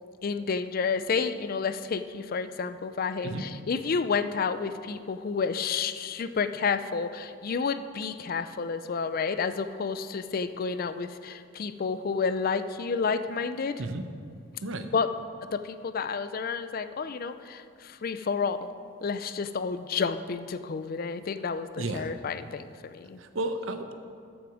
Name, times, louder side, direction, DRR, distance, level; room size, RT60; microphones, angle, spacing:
voice 1, 0.2-13.8 14.9-15.1 15.5-18.7 19.0-23.2, left 5 dB, 45° left, 12 dB, 0.4 m, -30 dB
voice 2, 14.6-14.9 21.8-22.1 23.2-23.9, right 2 dB, 75° right, 8 dB, 0.8 m, -33 dB
14.0 x 6.1 x 5.0 m, 2.4 s
head